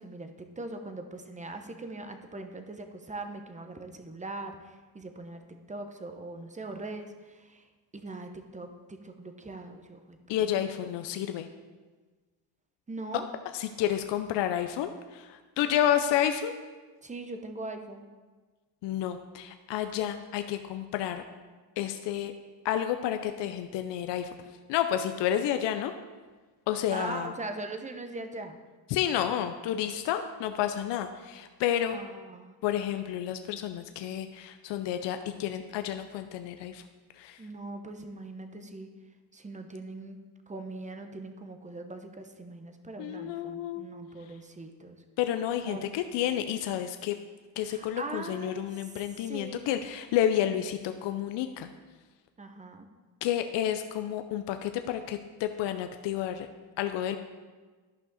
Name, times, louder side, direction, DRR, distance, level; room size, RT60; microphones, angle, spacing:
voice 1, 0.0-5.4 5.7-7.7 7.9-10.5 12.9-13.3 17.0-18.1 26.9-28.6 31.9-32.5 37.4-38.9 39.3-40.2 40.5-45.0 45.7-45.9 47.6-48.8 49.2-49.7 52.4-52.9, right 2 dB, 15° right, 7 dB, 0.9 m, -41 dB
voice 2, 10.3-11.5 13.5-16.5 18.8-21.2 21.8-22.3 22.6-24.3 24.7-25.9 26.7-27.3 28.9-32.0 32.6-36.8 37.2-37.4 43.0-43.9 45.2-47.1 47.6-51.7 53.2-56.5 56.8-57.2, left 10 dB, 65° left, 8 dB, 0.6 m, -30 dB
11.5 x 5.5 x 4.1 m, 1.4 s
supercardioid pair, 85°, 46 cm